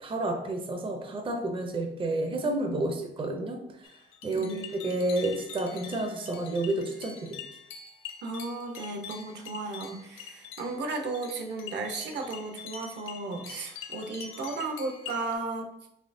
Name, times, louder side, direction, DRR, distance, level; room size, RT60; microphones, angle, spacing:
voice 1, 0.0-3.6 4.2-7.4, right 2 dB, 25° right, 3 dB, 0.5 m, -30 dB
sound 1, 3.8-15.3, left 7 dB, 85° left, 0.5 m, -45 dB
voice 2, 4.3-4.7 8.2-15.7, right 3 dB, 60° right, 4 dB, 0.7 m, -35 dB
4.2 x 3.1 x 2.6 m, 0.81 s
cardioid pair, 90°, 20 cm